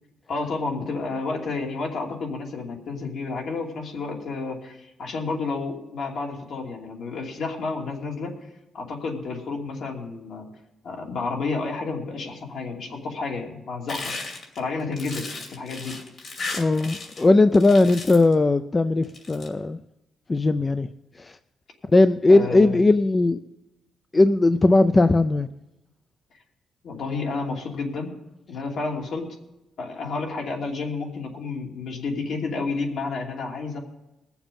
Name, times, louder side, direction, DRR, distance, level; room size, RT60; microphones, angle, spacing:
voice 1, 0.3-10.5 10.8-14.1 14.6-16.0 22.3-22.8 26.3-26.4 26.8-28.1 28.5-29.3 29.8-33.8, left 3 dB, 65° left, 0 dB, 2.7 m, -31 dB
sound 1, 13.9-17.3 17.5-18.3 19.0-19.5, left 3 dB, 45° left, 2.6 m, -35 dB
voice 2, 16.6-19.8 20.3-20.9 21.2-21.3 21.9-23.4 24.1-25.5, left 2 dB, 20° left, 11 dB, 0.3 m, -18 dB
21.0 x 7.1 x 5.3 m, 0.95 s
cardioid pair, 150°, 0 cm